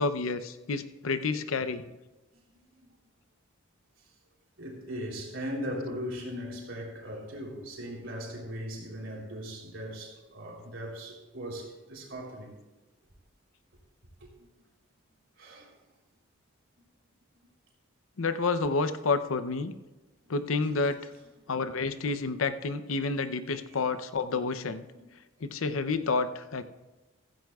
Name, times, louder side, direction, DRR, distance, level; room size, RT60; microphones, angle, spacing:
voice 1, 0.0-1.8 18.2-19.7 20.3-21.1 21.5-24.8 25.4-26.6, left 4 dB, 80° left, 0.7 m, -29 dB
voice 2, 4.6-12.5 14.2-14.5 15.4-15.7 20.2-20.3 23.5-23.6 24.3-24.4 24.9-25.1, equal, 65° right, 3.4 m, -39 dB
15.5 x 15.0 x 2.4 m
head